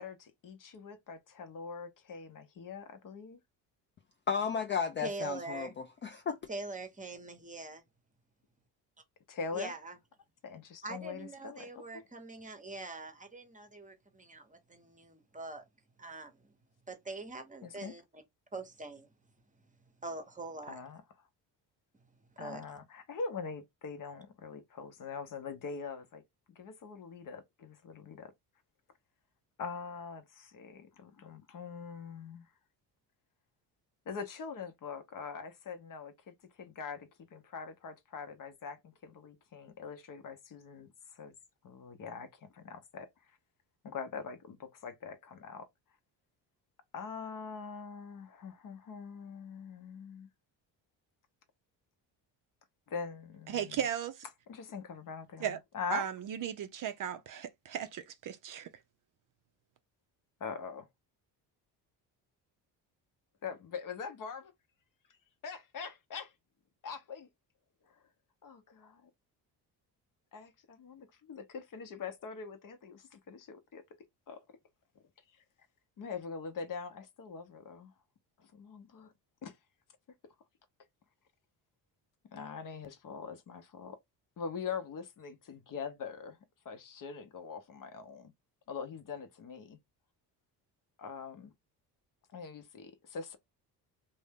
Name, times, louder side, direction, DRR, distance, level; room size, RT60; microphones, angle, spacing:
voice 1, 0.0-3.4 9.3-9.7 10.4-12.0 17.6-17.9 20.7-21.0 22.4-26.2 26.5-28.3 29.6-32.5 34.1-41.4 41.6-43.4 43.8-45.7 46.9-50.3 52.9-53.8 54.5-56.1 60.4-60.9 63.4-64.5 65.4-66.3 66.8-67.3 67.9-68.0 68.4-69.1 70.3-73.8 74.3-74.4 75.3-75.4 76.0-77.9 78.4-79.1 79.4-79.6 82.3-84.0 84.4-86.4 86.6-88.3 88.7-89.8 91.0-91.5 92.3-93.4, left 5 dB, 45° left, 0.7 m, -43 dB
voice 2, 4.3-6.4, left 6 dB, 30° left, 0.3 m, -34 dB
voice 3, 5.0-5.7 6.5-7.8 9.5-10.0 10.8-15.6 16.0-16.5 16.9-18.2 18.5-19.1 20.0-20.8 22.4-22.6, right 3 dB, 15° right, 0.8 m, -43 dB
voice 4, 53.5-54.2 55.4-55.6 55.9-58.7, right 9 dB, 45° right, 0.5 m, -36 dB
2.6 x 2.1 x 3.4 m
supercardioid pair, 75°, 45 cm